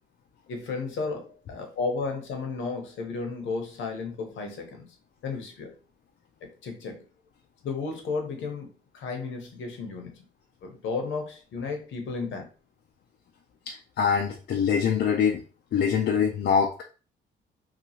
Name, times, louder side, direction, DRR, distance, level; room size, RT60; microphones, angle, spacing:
voice 1, 0.5-4.8 5.2-5.7 6.4-7.0 7.6-8.7 8.9-10.1 10.6-12.4, left 4 dB, 75° left, 4 dB, 0.9 m, -33 dB
voice 2, 13.7-15.4 15.7-16.8, left 7 dB, 55° left, 2 dB, 0.5 m, -24 dB
2.9 x 2.3 x 2.8 m, 0.36 s
cardioid pair, 90°, 20 cm